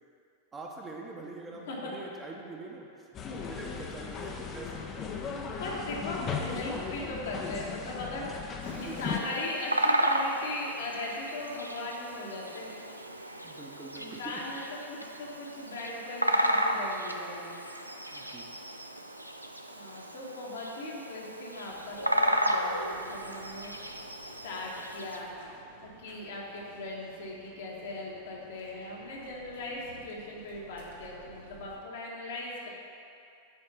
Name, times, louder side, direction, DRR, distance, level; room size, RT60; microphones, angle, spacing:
voice 1, 0.5-2.9 3.5-4.8 8.7-9.2 13.4-14.4 18.1-18.5, right 3 dB, 20° right, -1 dB, 1.0 m, -44 dB
sound 1, 3.1-9.2, left 6 dB, 30° left, 0.7 m, -37 dB
voice 2, 5.6-12.7 14.0-14.6 14.9-17.5 19.7-23.7 24.4-25.3 25.8-32.7, left 2 dB, 60° left, -4 dB, 1.5 m, -39 dB
Bird vocalization bird call bird song, 8.6-25.2, right 1 dB, 85° right, 0.4 m, -33 dB
sound 2, 21.6-31.8, right 3 dB, 60° right, 1.0 m, -55 dB
7.9 x 4.4 x 5.6 m, 2.6 s
figure-of-eight pair, 90°, 0 cm